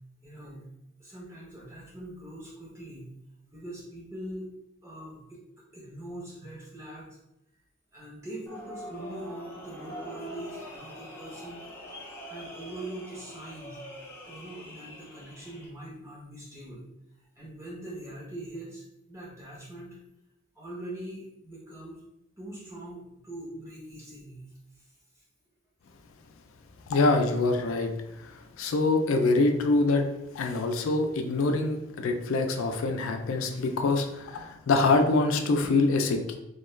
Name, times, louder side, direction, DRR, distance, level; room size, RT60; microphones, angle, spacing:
voice 1, 0.2-0.7 1.0-3.1 3.5-4.5 4.8-7.2 7.9-11.7 12.3-13.8 14.2-16.8 17.4-20.0 20.5-22.0 22.4-24.4 24.8-24.9 25.2-25.3, right 1 dB, 15° right, -5 dB, 0.7 m, -42 dB
sound 1, 8.5-15.7, equal, 10° left, 0.4 m, -44 dB
voice 2, 26.9-27.9 28.2-30.1 30.3-36.2, left 3 dB, 85° left, 5 dB, 0.4 m, -25 dB
2.3 x 2.2 x 3.1 m, 0.85 s
head